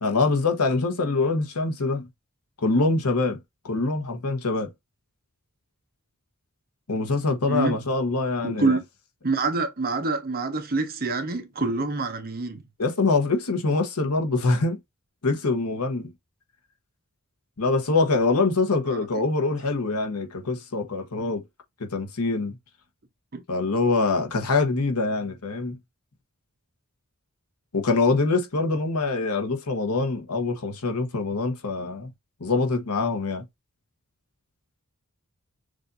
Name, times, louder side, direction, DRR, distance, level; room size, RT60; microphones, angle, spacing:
voice 1, 0.0-2.1 2.6-3.4 3.6-4.7 6.9-8.8 12.8-14.8 15.2-16.1 17.6-21.4 21.8-22.6 23.5-25.8 27.7-32.1 32.4-33.4, left 3 dB, 90° left, 1.1 m, -24 dB
voice 2, 7.5-7.8 8.4-8.8 9.2-12.6 18.9-19.0 23.3-23.4, right 3 dB, 45° right, 0.9 m, -26 dB
6.4 x 2.5 x 2.6 m
head